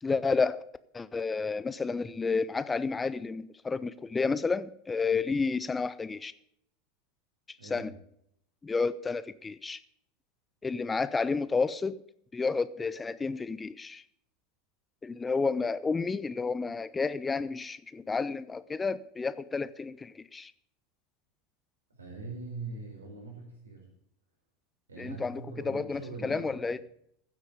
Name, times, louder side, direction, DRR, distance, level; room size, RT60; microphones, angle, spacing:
voice 1, 0.0-0.6 0.9-6.3 7.6-7.9 8.6-9.8 10.6-12.0 12.3-14.0 15.0-20.5 25.0-26.9, left 4 dB, 15° left, 16 dB, 0.5 m, -31 dB
voice 2, 22.0-23.9 24.9-26.6, right 3 dB, 75° right, 1 dB, 4.6 m, -42 dB
15.5 x 8.1 x 5.1 m, 0.72 s
figure-of-eight pair, 80°, 0 cm